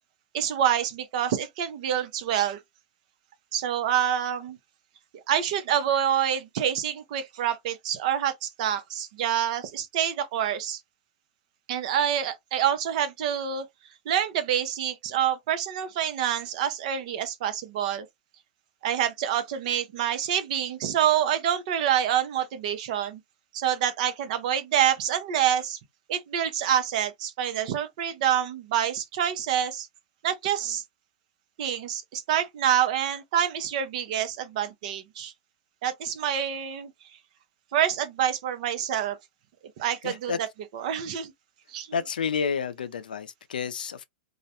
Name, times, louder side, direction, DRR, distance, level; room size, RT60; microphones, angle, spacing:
voice 1, 0.3-2.6 3.5-4.6 5.3-10.8 11.7-13.6 14.1-18.1 18.8-23.2 23.5-25.8 26.1-29.9 30.2-30.8 31.6-35.3 35.8-36.9 37.7-39.2 39.8-40.3 40.7-41.3 41.7-41.9, right 10 dB, 60° right, 0.7 m, -27 dB
voice 2, 40.0-40.4 41.9-44.0, left 6 dB, 90° left, 0.4 m, -30 dB
2.4 x 2.1 x 2.7 m
hypercardioid pair, 120°, 5 cm